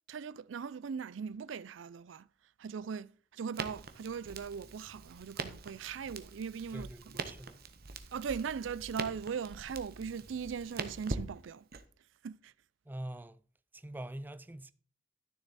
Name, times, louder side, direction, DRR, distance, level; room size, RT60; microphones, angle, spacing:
voice 1, 0.1-2.3 2.6-7.2 8.1-11.7 12.2-12.5, right 6 dB, 70° right, 0.4 m, -39 dB
Crackle, 3.5-11.8, right 4 dB, 55° right, 1.0 m, -43 dB
voice 2, 6.7-7.6 12.9-13.4 13.7-14.7, right 1 dB, 10° right, 0.4 m, -44 dB
12.5 x 6.9 x 4.1 m
head